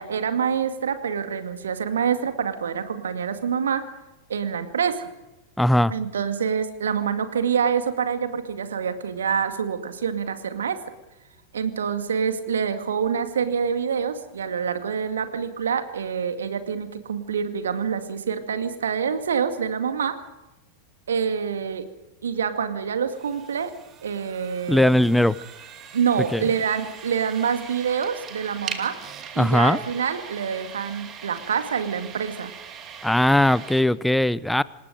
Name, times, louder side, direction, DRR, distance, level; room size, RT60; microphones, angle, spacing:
voice 1, 0.0-3.8 4.3-5.1 5.9-10.8 11.5-20.2 21.1-21.9 22.2-23.7 24.0-25.1 25.9-29.0 29.3-32.5, right 7 dB, 65° right, 8 dB, 2.2 m, -26 dB
voice 2, 5.6-5.9 24.7-25.3 26.3-26.4 29.4-29.8 33.0-34.6, left 1 dB, 5° left, 20 dB, 0.7 m, -19 dB
sound 1, 23.1-33.8, right 8 dB, 30° right, 2.6 m, -41 dB
27.0 x 19.5 x 5.2 m, 1.0 s
figure-of-eight pair, 90°, 0 cm